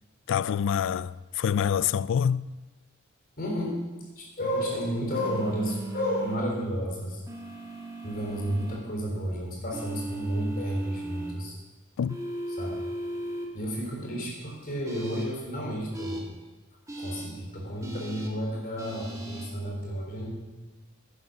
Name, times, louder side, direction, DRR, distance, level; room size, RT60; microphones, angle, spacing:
voice 1, 0.3-2.5 12.0-12.2, left 8 dB, 65° left, 0.3 m, -26 dB
voice 2, 3.4-3.8 4.2-7.2 8.0-11.6 12.5-12.8 13.2-16.2 17.0-20.3, equal, 45° left, 3.8 m, -32 dB
sound 1, 5.1-6.4 7.3-8.8 9.7-11.3 12.1-13.5 14.9-15.2 15.9-16.2 16.9-17.2 17.8-18.3 18.8-19.5, right 1 dB, 15° right, 1.8 m, -37 dB
11.0 x 9.9 x 6.1 m
head